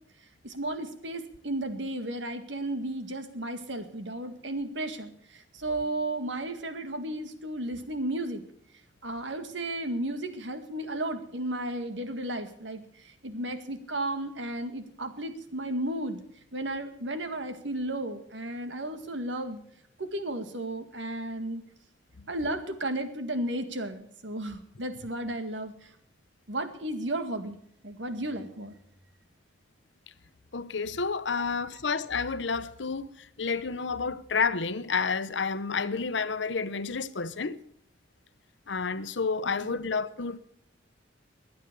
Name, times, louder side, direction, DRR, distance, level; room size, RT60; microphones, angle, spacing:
voice 1, 0.4-8.4 9.0-12.8 13.2-16.2 16.5-19.6 20.0-21.6 22.3-25.7 26.5-27.6 27.8-28.7 31.4-31.8 39.7-39.8, right 1 dB, 80° right, 2.0 m, -34 dB
voice 2, 30.5-37.6 38.7-40.4, left 5 dB, 75° left, 0.9 m, -30 dB
22.5 x 9.3 x 6.8 m
head